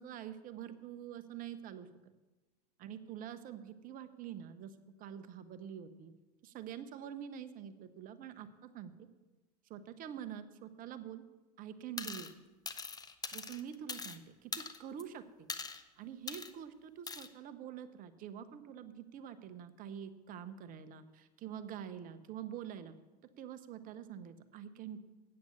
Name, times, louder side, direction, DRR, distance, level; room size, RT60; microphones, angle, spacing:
voice 1, 0.0-2.1 2.8-6.1 6.4-8.9 9.7-11.2 11.6-12.3 13.3-15.2 16.0-22.9 23.4-25.0, right 9 dB, 40° right, 11 dB, 0.9 m, -46 dB
sound 1, 12.0-12.3 12.7-14.2 14.5-15.0 15.5-15.8 16.3-16.5 17.1-17.3, left 5 dB, 20° left, 0.8 m, -42 dB
8.7 x 7.7 x 6.9 m, 1.2 s
hypercardioid pair, 90°, 21 cm